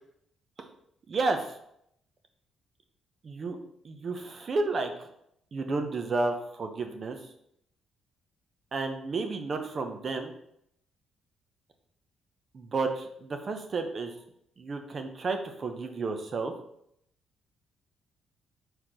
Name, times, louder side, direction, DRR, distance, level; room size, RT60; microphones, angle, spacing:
voice 1, 1.1-1.5 3.2-3.6 3.8-4.9 5.5-7.2 8.7-10.3 12.5-14.1 14.6-16.5, right 3 dB, 45° right, 6 dB, 0.9 m, -31 dB
4.5 x 4.4 x 5.1 m, 0.74 s
cardioid pair, 90°, 0 cm